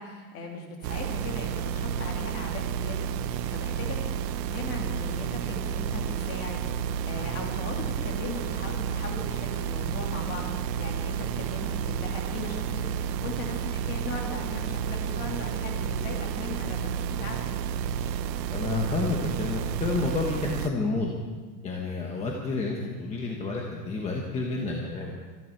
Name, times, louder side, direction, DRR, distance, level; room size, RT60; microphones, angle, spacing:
voice 1, 0.0-3.1 3.5-4.0 4.5-17.4, left 3 dB, 30° left, 1 dB, 2.7 m, -38 dB
sound 1, 0.8-20.7, right 8 dB, 90° right, 1.0 m, -31 dB
voice 2, 18.5-21.1 21.6-25.1, left 3 dB, 15° left, -1 dB, 1.1 m, -30 dB
25.0 x 10.5 x 4.6 m, 1.4 s
supercardioid pair, 165°, 49 cm